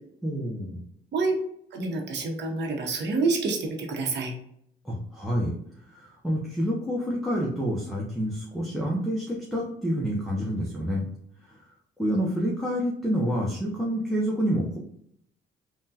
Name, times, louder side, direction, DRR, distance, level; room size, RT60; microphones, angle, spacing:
voice 1, 0.2-0.8 4.8-5.5 5.9-11.0 11.5-11.6 12.0-14.8, equal, ahead, -4 dB, 0.6 m, -28 dB
voice 2, 1.7-4.3, right 3 dB, 60° right, 2 dB, 0.8 m, -27 dB
3.5 x 2.2 x 2.7 m, 0.73 s
cardioid pair, 90°, 20 cm